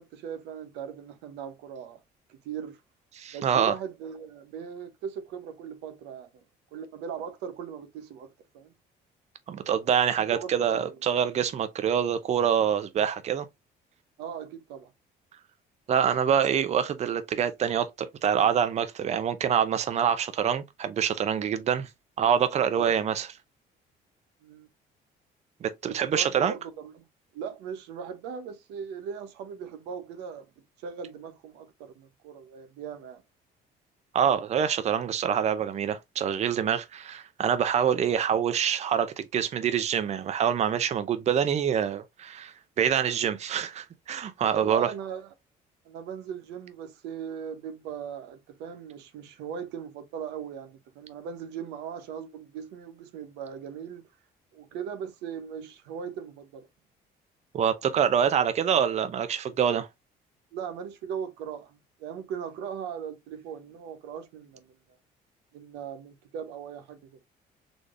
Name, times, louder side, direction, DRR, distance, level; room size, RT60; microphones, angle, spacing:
voice 1, 0.0-2.0 2.3-2.8 3.3-6.4 6.7-8.7 10.3-11.0 14.2-14.9 22.7-23.1 24.4-24.7 25.9-27.1 27.3-30.5 30.8-33.2 44.5-45.3 45.8-54.1 54.5-56.7 60.5-64.8 65.5-67.2, right 7 dB, 90° right, 0.8 m, -39 dB
voice 2, 3.2-3.7 9.5-13.5 15.9-21.9 22.2-23.3 25.6-26.5 34.1-44.9 57.5-59.9, right 8 dB, 40° right, 0.6 m, -26 dB
4.1 x 3.3 x 2.4 m
cardioid pair, 110°, 17 cm